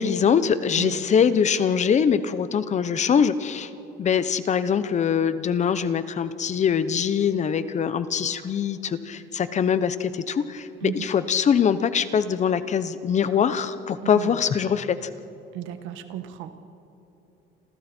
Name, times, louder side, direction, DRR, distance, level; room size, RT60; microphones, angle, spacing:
voice 1, 0.0-3.7 4.0-15.0, left 7 dB, 35° left, 13 dB, 1.0 m, -23 dB
voice 2, 15.5-16.5, right 10 dB, 80° right, 8 dB, 1.7 m, -33 dB
29.0 x 27.0 x 4.5 m, 2.9 s
cardioid pair, 120°, 20 cm